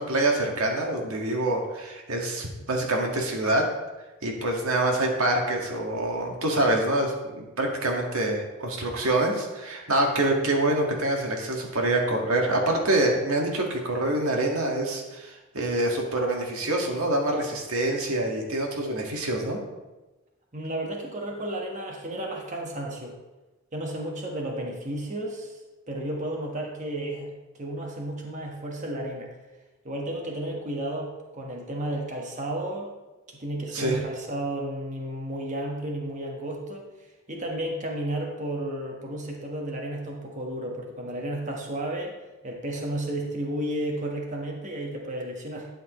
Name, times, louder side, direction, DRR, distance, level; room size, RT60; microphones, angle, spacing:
voice 1, 0.0-3.7 4.2-19.6 33.7-34.0, right 1 dB, 85° right, 1 dB, 1.8 m, -26 dB
voice 2, 20.5-23.1 23.7-25.6 25.9-29.3 29.8-32.9 33.3-36.8 37.3-42.1 42.4-45.7, right 1 dB, 35° right, 0 dB, 1.4 m, -32 dB
11.5 x 7.7 x 3.1 m, 1.1 s
head